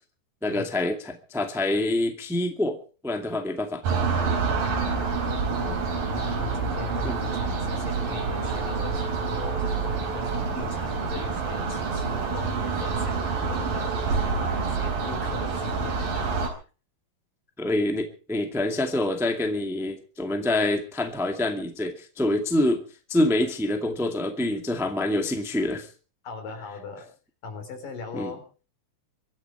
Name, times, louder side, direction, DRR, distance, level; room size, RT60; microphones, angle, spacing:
voice 1, 0.4-2.8 3.0-3.8 7.0-7.2 17.6-22.8 23.1-25.9 28.1-28.3, left 1 dB, ahead, 5 dB, 1.3 m, -26 dB
sound 1, 3.8-16.5, right 4 dB, 85° right, 5.5 m, -27 dB
voice 2, 4.6-5.7 6.1-16.3 26.2-27.1 27.4-28.4, left 5 dB, 75° left, 6 dB, 5.6 m, -40 dB
24.0 x 12.0 x 4.6 m, 0.37 s
omnidirectional pair, 3.9 m